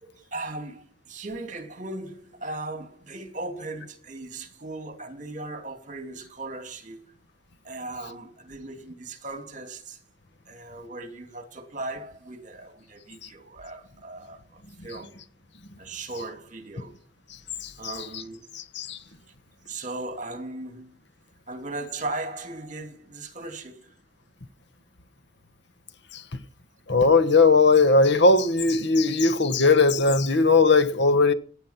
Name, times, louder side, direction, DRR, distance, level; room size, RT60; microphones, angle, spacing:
voice 1, 0.0-7.0 7.6-10.0 10.5-15.1 15.8-16.9 17.8-18.5 19.6-21.0 21.5-23.9, right 2 dB, 40° right, 2.6 m, -37 dB
voice 2, 17.6-18.2 18.5-19.0 26.1-26.2 26.9-31.3, left 3 dB, 60° left, 1.3 m, -19 dB
17.0 x 10.0 x 5.8 m
head